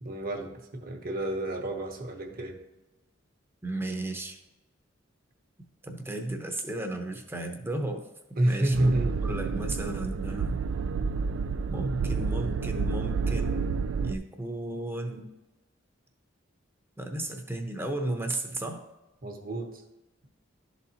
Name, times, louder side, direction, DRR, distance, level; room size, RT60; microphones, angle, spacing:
voice 1, 0.0-2.6 8.4-9.2 19.2-19.8, right 1 dB, 50° right, 3 dB, 1.0 m, -29 dB
voice 2, 3.6-4.4 5.8-8.1 8.5-10.6 11.7-13.7 14.0-15.3 17.0-18.8, right 1 dB, 10° right, 4 dB, 0.7 m, -34 dB
sound 1, 8.7-14.2, right 5 dB, 80° right, 0.3 m, -30 dB
11.5 x 4.1 x 2.8 m, 0.99 s
head